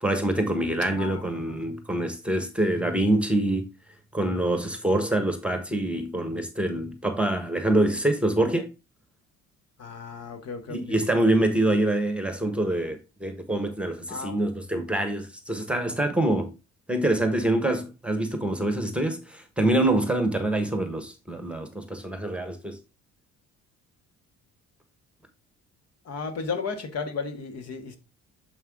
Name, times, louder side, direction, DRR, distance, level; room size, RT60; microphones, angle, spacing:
voice 1, 0.0-3.7 4.1-8.7 10.7-16.5 16.9-22.8, right 1 dB, 5° right, 1.1 m, -25 dB
voice 2, 1.0-1.8 9.8-11.0 14.1-14.4 26.0-28.0, left 5 dB, 60° left, 1.6 m, -34 dB
7.1 x 5.5 x 3.6 m
cardioid pair, 130°, 29 cm